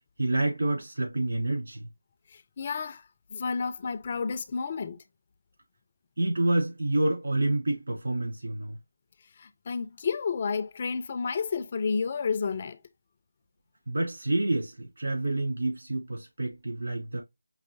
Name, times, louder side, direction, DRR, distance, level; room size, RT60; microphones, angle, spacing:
voice 1, 0.2-1.8 6.2-8.8 13.9-17.2, right 2 dB, 60° right, 3.3 m, -28 dB
voice 2, 2.3-3.0 3.3-5.0 9.4-12.8, left 5 dB, 30° left, 0.3 m, -31 dB
5.3 x 3.1 x 2.4 m
figure-of-eight pair, 165°, 0 cm